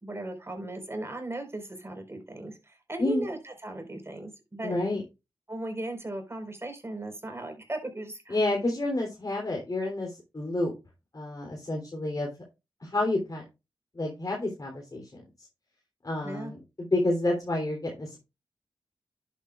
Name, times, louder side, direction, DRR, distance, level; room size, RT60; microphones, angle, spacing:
voice 1, 0.0-4.8 5.5-8.4 16.2-16.5, right 1 dB, 30° right, 5 dB, 4.5 m, -37 dB
voice 2, 4.6-5.0 8.3-10.7 11.1-12.3 12.8-13.4 14.0-15.2 16.0-16.6 16.9-18.2, left 2 dB, 45° left, 0 dB, 3.3 m, -29 dB
11.0 x 8.5 x 2.5 m, 0.26 s
cardioid pair, 45°, 9 cm